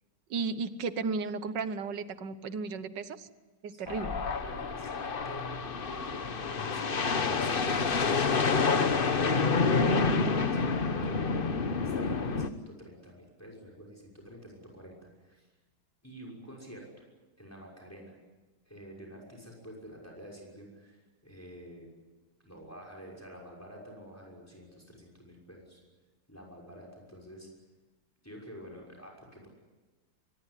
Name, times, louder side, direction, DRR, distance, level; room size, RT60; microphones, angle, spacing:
voice 1, 0.3-3.3 3.6-4.2, right 4 dB, 65° right, 13 dB, 1.7 m, -34 dB
voice 2, 3.7-4.0 4.4-5.5 5.8-8.8 9.3-11.2 11.8-15.5 16.0-16.9 17.4-18.2 18.7-21.9 22.4-25.8 26.3-27.5 28.2-29.5, equal, 5° left, 0 dB, 6.0 m, -48 dB
sound 1, 3.9-12.5, left 4 dB, 35° left, 0.9 m, -28 dB
24.0 x 20.0 x 10.0 m, 1.2 s
omnidirectional pair, 2.2 m